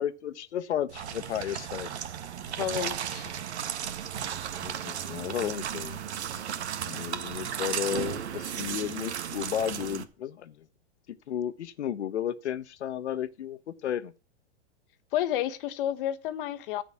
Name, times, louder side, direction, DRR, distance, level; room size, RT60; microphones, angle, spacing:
voice 1, 0.0-1.9 4.6-6.0 6.8-10.6 11.3-14.1, left 10 dB, 85° left, 1.1 m, -33 dB
sound 1, 0.9-10.0, right 9 dB, 80° right, 1.7 m, -35 dB
voice 2, 2.6-3.3 15.1-16.8, left 11 dB, 50° left, 1.2 m, -30 dB
14.5 x 5.2 x 7.2 m
hypercardioid pair, 140°, 33 cm